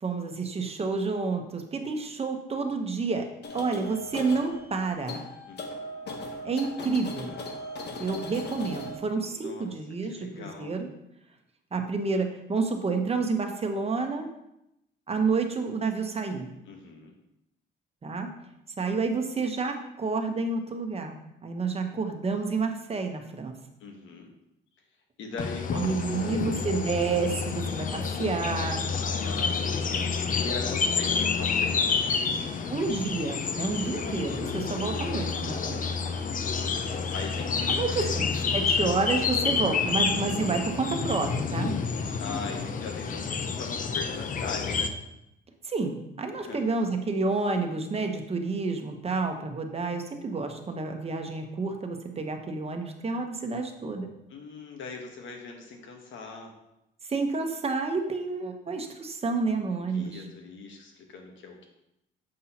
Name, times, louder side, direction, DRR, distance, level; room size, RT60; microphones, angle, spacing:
voice 1, 0.0-3.3 3.5-5.2 6.4-7.4 8.0-10.9 11.7-14.3 15.1-16.5 18.0-18.3 18.8-21.2 21.4-23.5 25.7-28.9 32.7-35.8 37.7-41.8 45.6-54.1 57.1-60.2, right 4 dB, 30° right, 4 dB, 1.0 m, -29 dB
sound 1, 3.4-9.0, left 2 dB, 60° left, 1.0 m, -38 dB
voice 2, 5.5-6.0 7.9-8.1 9.2-9.8 10.0-10.8 16.7-17.1 23.8-24.3 25.2-26.6 29.0-32.7 36.3-37.7 38.0-38.1 42.2-45.0 46.4-46.7 54.3-56.5 59.7-61.7, left 4 dB, 75° left, 3 dB, 1.3 m, -41 dB
sound 2, 25.4-44.9, left 5 dB, 45° left, 0.6 m, -29 dB
7.6 x 5.5 x 2.9 m, 0.85 s
cardioid pair, 90°, 20 cm